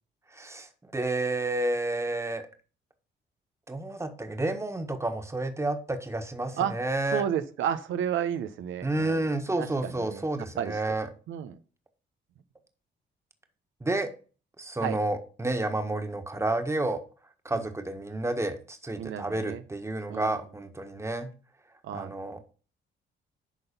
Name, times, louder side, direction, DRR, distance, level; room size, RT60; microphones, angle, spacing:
voice 1, 0.3-2.4 3.7-7.2 8.8-11.1 13.8-14.1 14.6-17.0 17.4-21.3 21.9-22.4, right 2 dB, 15° right, 6 dB, 1.5 m, -30 dB
voice 2, 7.1-9.3 9.6-10.2 10.6-11.0 11.3-11.6 14.8-15.0 17.5-17.6 19.0-19.6 20.1-20.3 21.8-22.1, right 9 dB, 80° right, 10 dB, 0.8 m, -32 dB
11.5 x 4.0 x 5.3 m, 0.37 s
cardioid pair, 90°, 20 cm